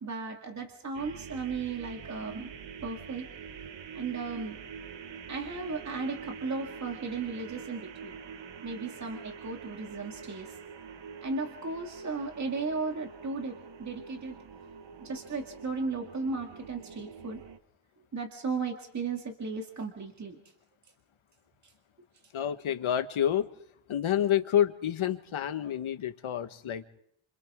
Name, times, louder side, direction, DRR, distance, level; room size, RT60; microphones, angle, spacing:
voice 1, 0.0-2.5 2.8-3.3 3.9-4.6 5.3-8.2 8.6-10.5 11.2-14.4 15.0-17.4 18.1-20.4, right 4 dB, 35° right, 3 dB, 2.1 m, -35 dB
sound 1, 0.9-17.6, right 6 dB, 65° right, 1.2 m, -45 dB
voice 2, 22.3-23.5 23.9-26.9, left 10 dB, 75° left, 9 dB, 1.5 m, -28 dB
29.0 x 27.0 x 3.7 m, 0.70 s
wide cardioid pair, 155°, 48 cm